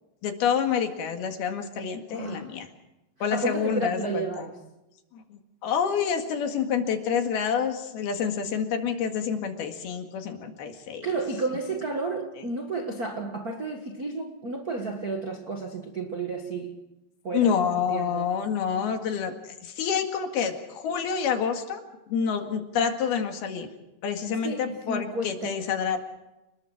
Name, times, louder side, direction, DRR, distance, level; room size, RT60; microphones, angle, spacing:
voice 1, 0.2-2.7 3.2-4.5 5.1-11.1 17.3-21.8 22.1-23.7 24.0-26.0, left 7 dB, 75° left, 3.8 m, -28 dB
voice 2, 2.1-2.5 3.3-4.6 11.0-16.9 17.2-17.5 17.9-18.3 24.3-25.5, right 3 dB, 55° right, 1.0 m, -32 dB
29.5 x 20.5 x 5.0 m
omnidirectional pair, 4.6 m